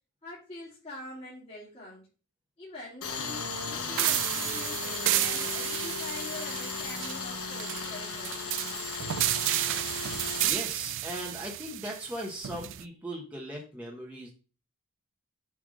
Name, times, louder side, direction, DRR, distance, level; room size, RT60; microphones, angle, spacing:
voice 1, 0.2-2.1 2.6-8.3, left 2 dB, 30° left, -7 dB, 2.6 m, -44 dB
Tools, 3.0-10.5, left 5 dB, 70° left, 1.3 m, -36 dB
sound 1, 4.0-12.8, right 14 dB, 60° right, 0.4 m, -32 dB
voice 2, 10.4-14.3, equal, 5° right, -3 dB, 1.1 m, -38 dB
7.4 x 3.6 x 4.9 m, 0.36 s
head